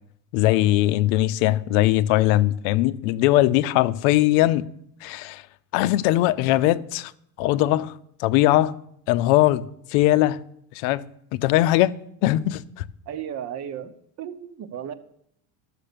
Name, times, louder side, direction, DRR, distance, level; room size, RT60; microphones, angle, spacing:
voice 1, 0.3-4.6 5.0-5.4 5.7-7.1 7.4-7.9 8.2-8.7 9.1-9.6 9.9-10.4 10.7-11.0 11.3-11.9 12.2-12.8, left 15 dB, 75° left, 0.7 m, -20 dB
voice 2, 13.1-13.9 14.2-14.9, right 9 dB, 40° right, 0.8 m, -34 dB
13.5 x 6.7 x 6.7 m
cardioid pair, 170°, 42 cm